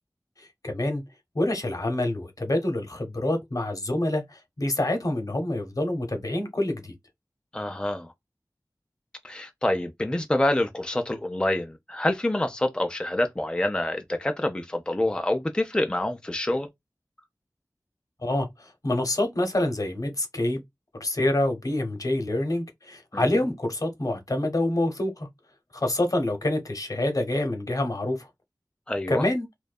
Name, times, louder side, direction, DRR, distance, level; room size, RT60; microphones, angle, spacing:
voice 1, 0.4-1.0 1.3-6.9 18.2-20.6 21.0-25.3 25.7-28.3 29.1-29.5, left 1 dB, 60° left, 0.9 m, -27 dB
voice 2, 7.5-8.1 9.2-16.7 23.1-23.2 28.9-29.2, left 1 dB, 15° left, 0.4 m, -27 dB
2.6 x 2.2 x 2.2 m
wide cardioid pair, 40°, 7 cm